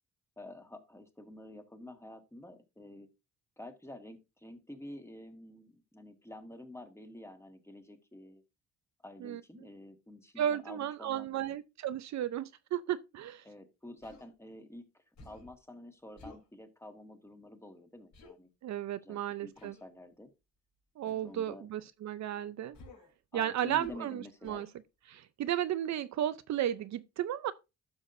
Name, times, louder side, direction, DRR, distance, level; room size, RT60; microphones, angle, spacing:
voice 1, 0.4-3.1 3.6-8.4 9.0-11.6 13.4-18.5 19.0-20.3 21.0-21.7 23.3-24.6, left 1 dB, 10° left, 1.7 m, -49 dB
voice 2, 9.2-9.7 10.4-13.4 18.6-19.7 21.0-22.8 23.3-24.7 25.1-27.5, right 11 dB, 65° right, 0.6 m, -34 dB
Human voice, 14.0-14.3 15.2-15.5 16.2-16.5 18.1-18.3 19.5-19.9 21.1-21.3 22.7-23.1 23.8-24.1 24.4-24.7, left 3 dB, 65° left, 3.4 m, -53 dB
12.0 x 6.4 x 2.6 m
cardioid pair, 90°, 30 cm